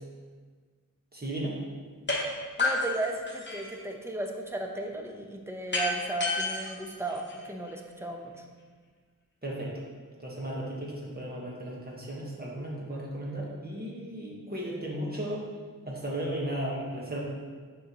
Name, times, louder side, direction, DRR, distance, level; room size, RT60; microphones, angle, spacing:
voice 1, 1.1-1.6 9.4-9.8 10.2-15.4 15.8-17.2, right 1 dB, 30° right, -5 dB, 1.3 m, -35 dB
sound 1, 2.1-2.2 2.6-3.8 5.7-7.7, left 3 dB, 35° left, 1.1 m, -30 dB
voice 2, 2.6-8.4, right 2 dB, 10° right, 1 dB, 0.7 m, -35 dB
6.5 x 5.7 x 2.9 m, 1.5 s
wide cardioid pair, 75°, 33 cm